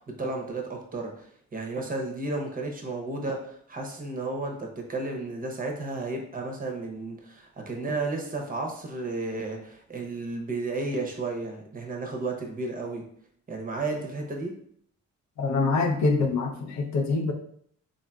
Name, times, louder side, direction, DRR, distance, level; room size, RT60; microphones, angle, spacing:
voice 1, 0.0-13.0 13.5-14.5, right 3 dB, 30° right, 1 dB, 0.7 m, -33 dB
voice 2, 15.4-17.3, left 3 dB, 70° left, 3 dB, 0.6 m, -25 dB
3.7 x 2.5 x 2.2 m, 0.64 s
cardioid pair, 90°, 30 cm